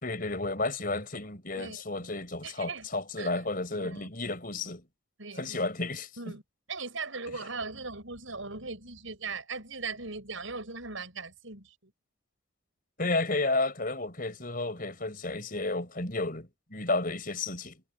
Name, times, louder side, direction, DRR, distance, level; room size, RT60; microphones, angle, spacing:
voice 1, 0.0-4.9 5.4-6.1 13.0-17.8, left 2 dB, 40° left, 4.9 m, -32 dB
voice 2, 2.4-2.9 3.2-3.3 3.7-4.1 5.2-5.6 6.2-6.4 6.7-11.9, right 4 dB, 70° right, 6.5 m, -39 dB
head